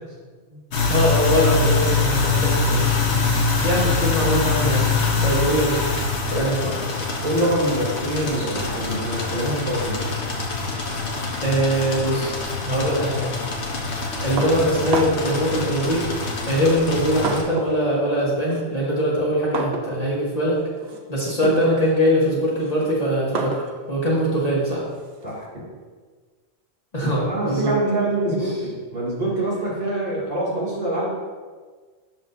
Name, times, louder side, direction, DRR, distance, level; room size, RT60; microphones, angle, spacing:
sound 1, 0.7-17.4, left 4 dB, 75° left, 1.2 m, -24 dB
voice 1, 0.9-3.3 3.6-4.9 5.2-5.9 6.2-6.8 8.3-8.6 11.4-12.4 12.6-13.3 14.2-16.1 16.5-20.6 21.1-24.8 26.9-27.7 28.3-28.4, equal, 35° left, -6 dB, 1.2 m, -22 dB
voice 2, 6.3-6.6 7.2-10.0 25.2-25.7 27.0-31.0, right 1 dB, 40° right, -8 dB, 2.3 m, -25 dB
sound 2, 14.4-15.4 16.3-17.8 18.1-25.5, right 3 dB, 70° right, 1.0 m, -32 dB
7.6 x 6.0 x 2.6 m, 1.5 s
omnidirectional pair, 1.1 m